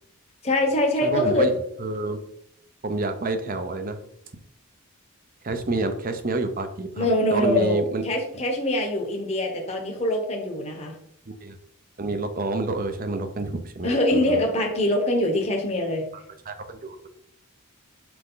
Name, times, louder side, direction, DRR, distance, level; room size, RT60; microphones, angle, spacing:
voice 1, 0.4-1.5 7.0-11.0 13.8-16.1, left 1 dB, 30° left, 1 dB, 1.0 m, -23 dB
voice 2, 1.0-1.5 1.8-2.2 2.8-4.0 5.4-8.1 11.3-11.6 12.0-14.4 16.5-17.1, right 2 dB, 40° right, 8 dB, 0.7 m, -28 dB
5.9 x 5.0 x 3.9 m, 0.70 s
head